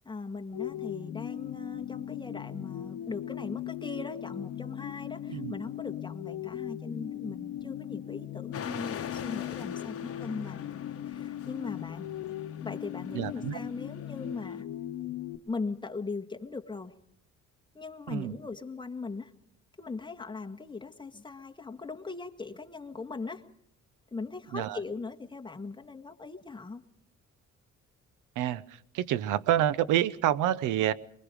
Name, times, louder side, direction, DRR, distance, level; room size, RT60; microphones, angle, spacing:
voice 1, 0.0-10.8 11.1-12.1 12.6-14.7 15.5-17.0 17.7-19.3 19.8-23.5 24.1-26.8, left 4 dB, 15° left, 3 dB, 1.7 m, -39 dB
sound 1, 0.5-15.4, left 12 dB, 85° left, 1.0 m, -38 dB
sound 2, 8.5-14.6, left 8 dB, 50° left, 1.2 m, -44 dB
voice 2, 13.1-13.6 18.1-18.3 24.5-24.8 28.4-28.6 28.9-30.9, right 12 dB, 90° right, 17 dB, 0.8 m, -27 dB
24.5 x 22.0 x 5.1 m, 0.66 s
cardioid pair, 90°, 30 cm